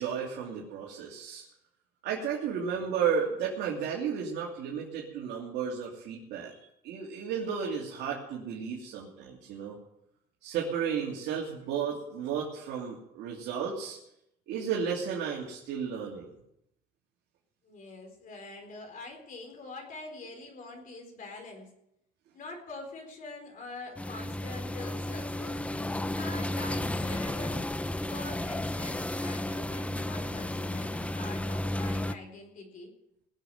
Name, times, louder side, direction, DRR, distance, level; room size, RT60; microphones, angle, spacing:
voice 1, 0.0-1.4 2.0-9.8 10.4-14.0 14.5-16.3, right 7 dB, 80° right, -3 dB, 2.9 m, -33 dB
voice 2, 17.6-21.7 22.3-25.6 26.1-27.7 28.0-32.9, left 3 dB, 55° left, 2 dB, 4.2 m, -44 dB
sound 1, 24.0-32.2, left 1 dB, 5° left, 0.6 m, -33 dB
20.0 x 7.5 x 8.0 m, 0.80 s
cardioid pair, 110°, 17 cm